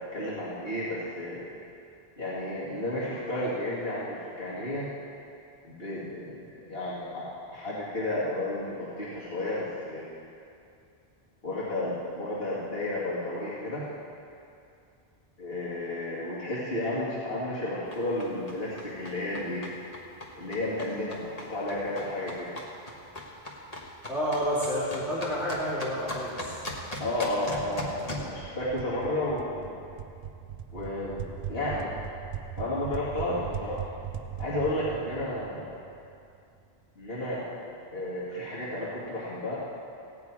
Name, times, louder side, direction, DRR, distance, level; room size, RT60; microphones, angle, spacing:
voice 1, 0.1-1.4 2.2-4.9 5.6-10.1 11.4-13.8 15.4-19.7 20.3-22.5 27.0-29.8 30.7-31.9 32.6-33.9 34.4-35.7 37.0-37.4 37.9-39.5, left 1 dB, 65° left, -11 dB, 2.6 m, -32 dB
sound 1, 17.9-28.3, left 1 dB, 40° left, 1.5 m, -40 dB
voice 2, 24.1-26.6, equal, ahead, -12 dB, 3.3 m, -29 dB
sound 2, 27.6-36.2, right 8 dB, 80° right, 1.0 m, -40 dB
16.5 x 9.0 x 4.8 m, 2.5 s
omnidirectional pair, 1.1 m